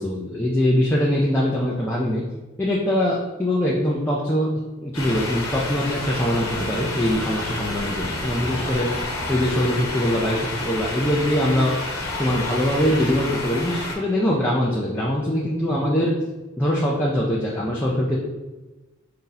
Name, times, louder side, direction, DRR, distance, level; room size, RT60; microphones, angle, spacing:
voice 1, 0.0-2.2 2.6-4.5 4.8-11.7 12.2-16.1 16.6-18.2, equal, 10° left, -5 dB, 0.5 m, -22 dB
sound 1, 4.9-14.0, left 2 dB, 80° left, 1.0 m, -29 dB
4.8 x 2.8 x 3.9 m, 1.2 s
head